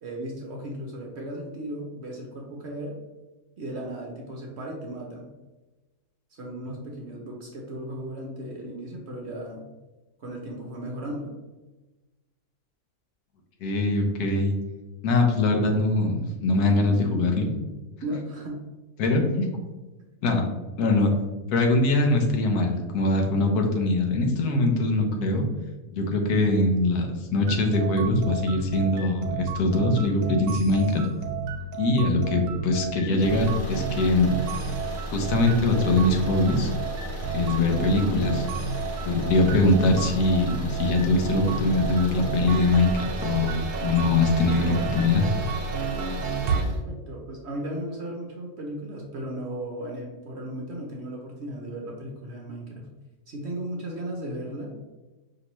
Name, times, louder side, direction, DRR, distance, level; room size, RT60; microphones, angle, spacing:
voice 1, 0.0-2.9 3.6-5.3 6.3-9.7 10.2-11.3 18.0-18.6 46.5-52.9 53.3-54.7, right 1 dB, 55° right, -1 dB, 0.8 m, -36 dB
voice 2, 13.6-14.5 15.0-17.5 19.0-19.5 20.2-20.4 20.8-21.1 21.5-25.4 25.9-31.0 31.8-34.3 35.1-36.7 37.3-38.5 39.0-43.6 43.8-45.2, left 2 dB, 80° left, 3 dB, 1.3 m, -22 dB
sound 1, 27.4-46.6, right 5 dB, 85° right, 1.1 m, -32 dB
sound 2, 33.1-46.8, right 1 dB, 20° right, 0.4 m, -35 dB
5.1 x 2.9 x 3.0 m, 1.2 s
omnidirectional pair, 1.6 m